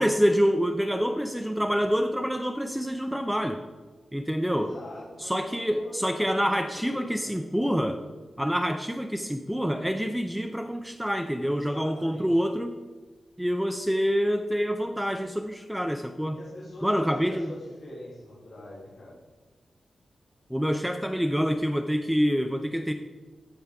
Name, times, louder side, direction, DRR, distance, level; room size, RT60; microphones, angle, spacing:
voice 1, 0.0-3.6 4.1-4.7 5.2-8.0 8.4-12.7 13.4-16.4 16.8-17.5 20.5-22.9, equal, ahead, 5 dB, 0.4 m, -26 dB
voice 2, 4.5-7.4 11.4-12.5 16.3-19.2, left 1 dB, 85° left, -9 dB, 3.0 m, -43 dB
14.5 x 5.0 x 3.5 m, 1.3 s
wide cardioid pair, 155°, 0 cm